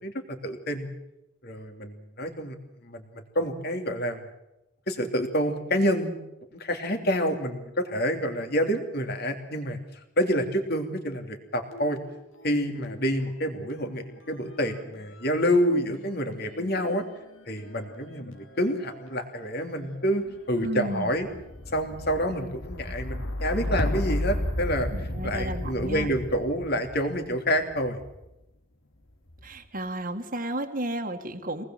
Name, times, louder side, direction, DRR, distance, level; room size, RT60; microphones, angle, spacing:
voice 1, 0.0-0.9 1.4-2.5 2.8-4.2 4.9-6.2 6.5-9.8 10.2-12.0 12.4-17.0 17.5-21.3 21.7-28.0, equal, 50° left, 5 dB, 3.0 m, -28 dB
sound 1, 11.7-13.0 13.3-28.3 29.1-29.7, left 1 dB, 75° left, 2.4 m, -35 dB
voice 2, 20.6-21.1 24.9-26.1 29.4-31.6, right 1 dB, 45° right, 4 dB, 1.8 m, -33 dB
24.5 x 19.5 x 7.6 m, 0.92 s
head